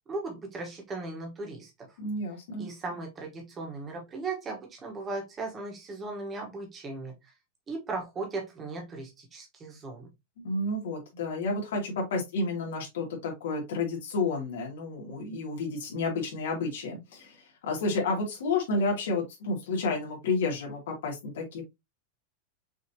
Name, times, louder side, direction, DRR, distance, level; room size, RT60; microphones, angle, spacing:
voice 1, 0.1-1.7 2.6-7.1 7.7-10.1, right 3 dB, 15° right, 1.2 m, -37 dB
voice 2, 2.0-2.7 10.4-21.6, left 3 dB, 85° left, 2.0 m, -31 dB
5.9 x 2.8 x 2.8 m
supercardioid pair, 175°, 0 cm